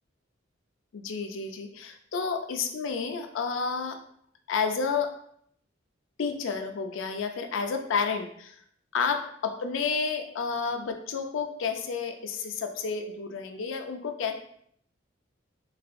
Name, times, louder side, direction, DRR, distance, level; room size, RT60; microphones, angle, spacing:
voice 1, 0.9-4.0 4.5-5.2 6.2-8.5 8.9-14.3, left 5 dB, 75° left, 5 dB, 0.4 m, -30 dB
4.0 x 2.4 x 2.5 m, 0.66 s
head